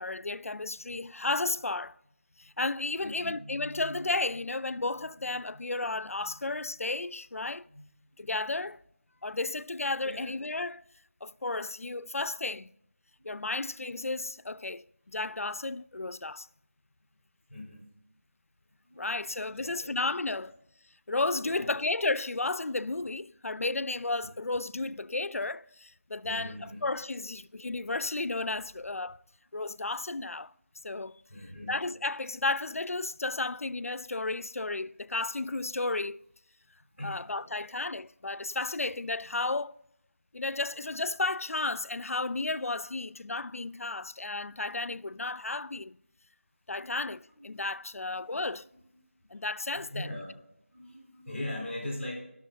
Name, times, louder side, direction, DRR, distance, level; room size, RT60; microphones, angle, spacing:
voice 1, 0.0-1.9 2.4-7.7 8.2-8.8 9.2-10.8 11.2-12.7 13.2-16.5 19.0-20.5 21.1-26.5 26.8-29.2 29.5-30.5 30.8-31.2 31.7-36.2 37.0-39.7 40.3-46.0 46.7-48.6 49.3-50.1, left 2 dB, 85° left, 0.4 m, -33 dB
voice 2, 3.0-4.1 7.7-8.3 10.0-10.3 13.2-13.4 13.6-13.8 17.5-17.8 18.8-19.2 19.5-20.1 20.4-20.5 21.4-21.7 24.0-24.1 25.1-25.2 26.2-26.8 31.3-31.7 37.0-37.6 42.5-42.6 46.7-46.9 47.3-47.6 47.9-48.2 48.6-49.0 49.7-50.3 50.7-52.2, left 1 dB, 5° right, 3.5 m, -42 dB
11.5 x 6.3 x 4.0 m
figure-of-eight pair, 175°, 7 cm